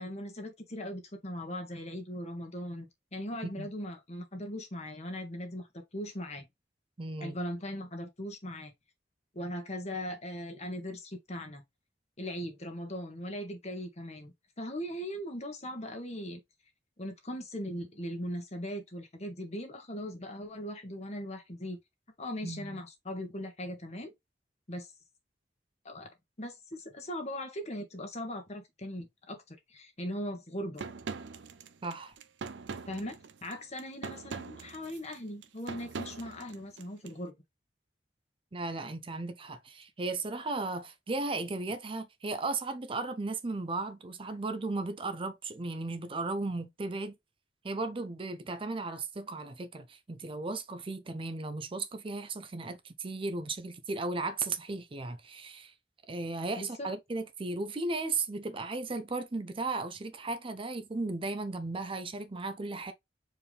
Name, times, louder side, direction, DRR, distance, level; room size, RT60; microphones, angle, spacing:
voice 1, 0.0-6.5 7.2-8.7 9.3-11.6 12.2-16.4 17.0-21.8 22.2-24.1 24.7-24.9 25.8-26.1 26.4-30.8 32.9-37.3 56.6-56.9, equal, 40° left, 1.5 m, -39 dB
voice 2, 7.0-7.4 22.4-22.8 31.8-32.1 38.5-47.1 47.6-55.7 56.1-62.9, right 3 dB, 30° right, 0.5 m, -35 dB
sound 1, 30.8-37.1, right 5 dB, 85° right, 0.6 m, -42 dB
4.6 x 3.5 x 3.2 m
head